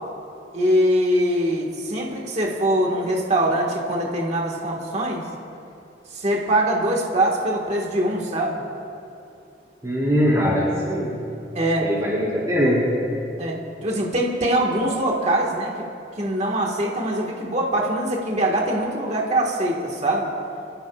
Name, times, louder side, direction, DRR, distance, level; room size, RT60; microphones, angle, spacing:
voice 1, 0.5-5.2 6.1-8.6 11.6-11.9 13.4-15.9 16.2-20.3, right 1 dB, 40° right, -1 dB, 1.7 m, -23 dB
voice 2, 9.8-11.2 11.8-12.8, equal, 25° right, -7 dB, 2.8 m, -21 dB
26.0 x 15.5 x 2.5 m, 2.7 s
head